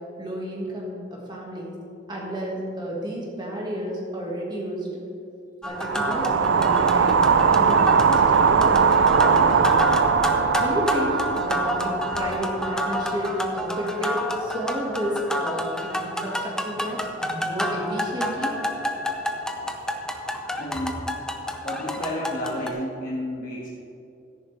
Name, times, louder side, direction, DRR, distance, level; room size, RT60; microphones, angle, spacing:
voice 1, 0.2-1.8 2.1-4.9 5.6-9.9 10.6-18.5, equal, 20° right, -3 dB, 1.8 m, -31 dB
sound 1, 5.6-22.7, equal, 5° left, 0.6 m, -29 dB
sound 2, 5.8-14.0, right 6 dB, 70° right, 0.4 m, -21 dB
voice 2, 20.6-21.1 21.6-23.7, left 1 dB, 45° left, -7 dB, 1.5 m, -31 dB
14.0 x 10.0 x 3.3 m, 2.7 s
head